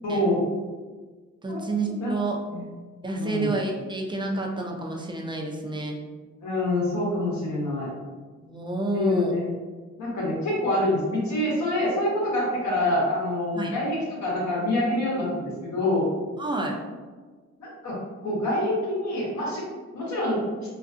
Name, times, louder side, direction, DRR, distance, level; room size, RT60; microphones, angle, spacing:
voice 1, 0.0-0.5 1.5-2.2 2.5-2.7 3.1-3.5 6.4-7.9 8.9-9.5 10.0-16.1 17.6-18.0 18.2-19.6 19.9-20.4, left 1 dB, 65° left, -5 dB, 0.9 m, -26 dB
voice 2, 1.4-2.4 3.0-6.0 8.4-9.3 13.5-13.7 16.4-16.7, right 2 dB, 15° right, 0 dB, 0.5 m, -29 dB
2.4 x 2.3 x 2.5 m, 1.4 s
cardioid pair, 70°, 31 cm